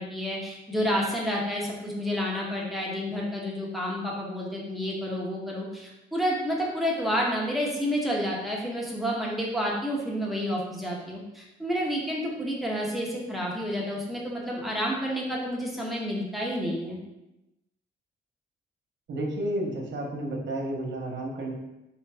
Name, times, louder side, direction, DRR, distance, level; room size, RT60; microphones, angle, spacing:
voice 1, 0.0-17.0, equal, ahead, -3 dB, 1.1 m, -30 dB
voice 2, 19.1-21.5, right 1 dB, 65° right, 0 dB, 1.1 m, -31 dB
3.9 x 3.1 x 3.4 m, 0.93 s
cardioid pair, 95°, 20 cm